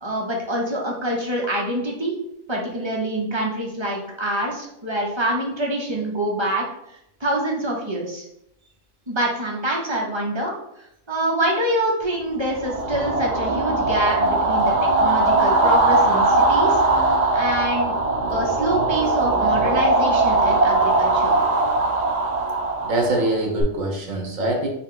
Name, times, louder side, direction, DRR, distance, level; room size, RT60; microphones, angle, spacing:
voice 1, 0.0-2.2 2.5-6.6 7.2-8.2 9.1-10.5 11.1-14.7 15.0-17.9 18.3-21.4, right 1 dB, 25° right, -2 dB, 0.9 m, -25 dB
sound 1, 12.5-23.6, right 2 dB, 50° right, 0.5 m, -20 dB
voice 2, 22.8-24.7, right 1 dB, 75° right, 2 dB, 1.4 m, -23 dB
5.5 x 2.4 x 3.8 m, 0.79 s
omnidirectional pair, 1.4 m